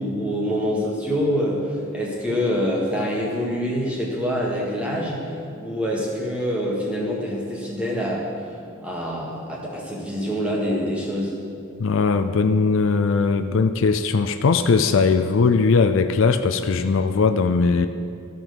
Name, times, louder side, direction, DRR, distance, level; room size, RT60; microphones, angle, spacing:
voice 1, 0.0-8.6 8.8-11.3, equal, 5° right, -4 dB, 1.6 m, -25 dB
voice 2, 11.8-17.9, left 4 dB, 70° left, 8 dB, 0.4 m, -19 dB
14.0 x 5.4 x 6.0 m, 2.6 s
head